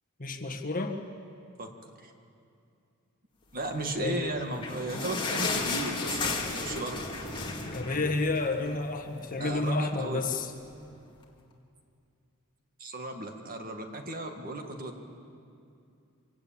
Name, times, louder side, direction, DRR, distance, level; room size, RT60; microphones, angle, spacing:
voice 1, 0.2-1.0 3.8-4.2 7.7-10.5, left 3 dB, 40° left, 4 dB, 1.5 m, -30 dB
voice 2, 3.5-7.1 9.4-10.2 12.8-15.0, right 2 dB, 40° right, 4 dB, 1.9 m, -35 dB
sound 1, 4.2-8.9 9.3-9.4 9.7-9.8 10.5-10.6, left 3 dB, 20° left, 2.2 m, -34 dB
24.5 x 16.5 x 8.8 m, 2.5 s
head